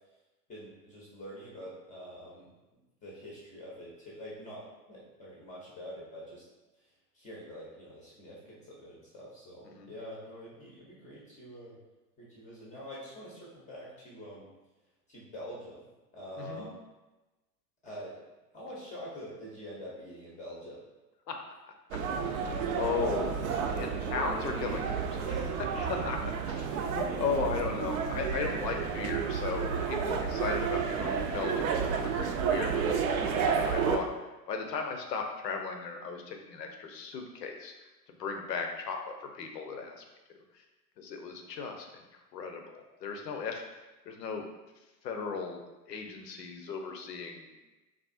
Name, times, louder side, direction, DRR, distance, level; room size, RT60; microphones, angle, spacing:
voice 1, 0.5-2.5 3.0-6.5 6.7-11.8 12.2-14.5 15.1-15.8 16.1-16.7 17.8-18.2 18.5-20.8 25.2-25.9 27.0-27.2, equal, 15° left, -5 dB, 0.6 m, -46 dB
voice 2, 16.4-16.7 21.3-21.4 22.2-25.3 26.0-26.2 26.5-34.1 34.5-37.7 38.1-40.0 40.3-40.6 41.0-43.6 44.0-44.5 45.0-47.6, left 5 dB, 75° left, 4 dB, 0.7 m, -37 dB
sound 1, 21.9-34.0, right 6 dB, 55° right, 0.5 m, -31 dB
3.4 x 2.4 x 2.4 m, 1.1 s
figure-of-eight pair, 100°, 50 cm